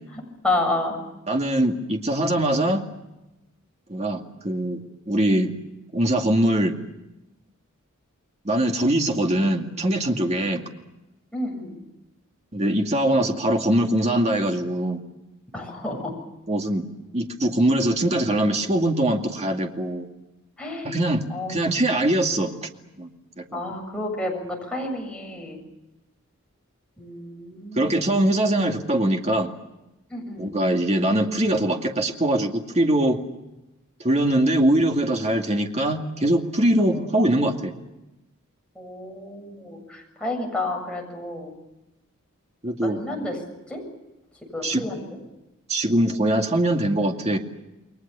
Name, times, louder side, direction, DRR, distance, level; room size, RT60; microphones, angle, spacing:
voice 1, 0.4-1.0 11.3-11.8 15.5-16.1 20.6-20.9 21.3-21.6 23.5-25.6 27.0-28.1 30.1-30.5 36.9-37.1 38.8-41.5 42.8-43.4 43.7-43.8 44.5-45.0, left 2 dB, 5° left, 0 dB, 7.2 m, -30 dB
voice 2, 1.3-2.8 3.9-5.5 5.9-6.8 8.4-10.6 12.5-15.0 16.5-16.8 17.1-20.1 20.8-21.2 21.5-22.5 23.0-23.1 23.4-23.6 27.8-29.5 30.4-33.2 34.0-37.7 42.6-43.0 44.6-44.9 45.7-47.4, right 1 dB, 30° right, 3 dB, 2.3 m, -22 dB
29.5 x 22.0 x 7.0 m, 0.97 s
head